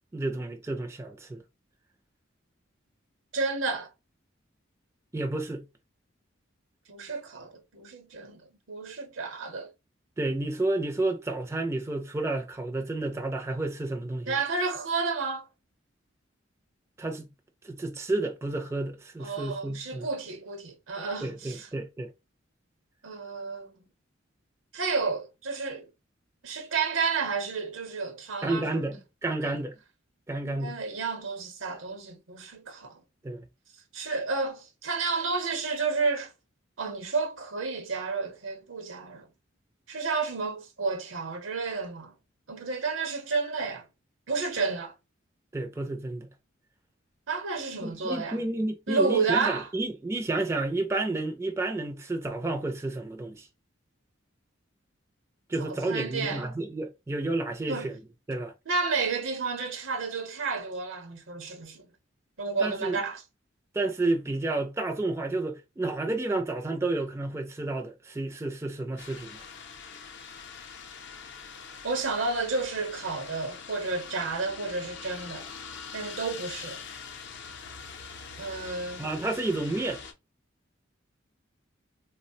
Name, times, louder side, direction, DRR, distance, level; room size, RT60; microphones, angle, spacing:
voice 1, 0.1-1.4 5.1-5.6 10.2-14.4 17.0-17.3 17.6-20.1 21.2-22.1 28.4-29.8 30.3-30.8 33.2-33.5 45.5-46.3 47.8-53.5 55.5-58.0 58.3-58.5 62.6-63.0 63.7-69.4 79.0-80.0, right 2 dB, 15° right, 0.4 m, -31 dB
voice 2, 3.3-3.9 6.9-9.7 14.3-15.5 19.2-21.7 23.0-23.9 24.7-25.9 26.4-28.9 29.4-29.6 30.4-33.0 33.9-36.3 36.8-39.3 39.9-42.1 42.5-43.9 44.3-44.9 47.3-48.4 48.9-49.7 55.6-56.5 57.7-57.9 58.7-61.9 62.4-63.2 71.8-75.5 75.9-76.8 78.4-79.1, right 4 dB, 75° right, 0.8 m, -31 dB
sound 1, 69.0-80.1, left 6 dB, 60° left, 0.5 m, -43 dB
3.3 x 2.1 x 2.6 m
head